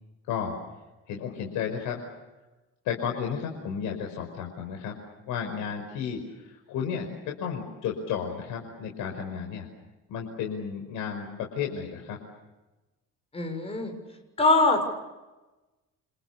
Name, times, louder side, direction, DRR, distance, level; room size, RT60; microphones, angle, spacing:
voice 1, 0.2-0.6 1.1-2.0 2.8-5.0 5.3-9.7 10.1-12.2, left 7 dB, 85° left, 2 dB, 5.4 m, -33 dB
voice 2, 13.3-13.9 14.4-14.8, left 3 dB, 20° left, 5 dB, 7.0 m, -22 dB
30.0 x 27.0 x 6.9 m, 1.1 s
cardioid pair, 160°, 30 cm